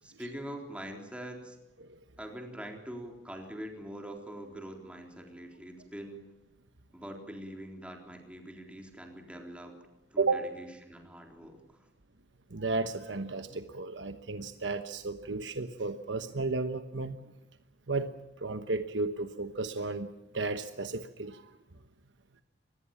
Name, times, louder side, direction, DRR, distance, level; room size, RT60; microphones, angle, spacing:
voice 1, 0.0-1.6 2.2-6.2 6.9-9.8 10.1-11.9, right 1 dB, 5° right, 2 dB, 3.8 m, -44 dB
voice 2, 12.5-17.2 17.9-20.1 20.3-21.4, right 3 dB, 85° right, 9 dB, 1.1 m, -33 dB
25.0 x 20.0 x 7.2 m, 0.94 s
head